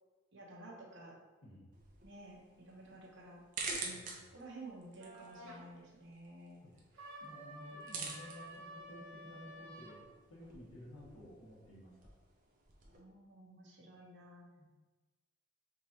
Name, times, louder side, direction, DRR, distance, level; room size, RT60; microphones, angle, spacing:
voice 1, 0.3-1.2 2.0-6.6 12.8-14.5, right 2 dB, 55° right, -3 dB, 1.0 m, -53 dB
sound 1, 1.7-13.0, right 4 dB, 40° right, 0.6 m, -49 dB
Trumpet Sound Pack, 5.0-5.6 6.9-10.0, right 1 dB, 80° right, 0.9 m, -51 dB
voice 2, 7.2-12.1 14.6-14.7, left 1 dB, 90° left, -5 dB, 1.5 m, -54 dB
5.2 x 3.1 x 2.8 m, 1.3 s
head